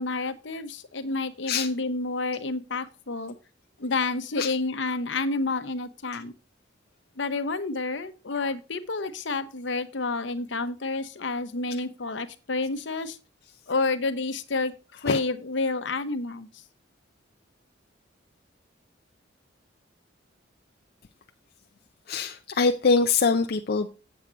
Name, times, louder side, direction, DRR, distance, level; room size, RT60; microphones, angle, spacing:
voice 1, 0.0-3.3 3.8-6.3 7.2-13.2 13.7-14.7 15.0-16.5, left 3 dB, 70° left, 0.9 m, -29 dB
voice 2, 22.1-23.9, left 4 dB, 50° left, 0.5 m, -23 dB
8.0 x 7.5 x 3.9 m
head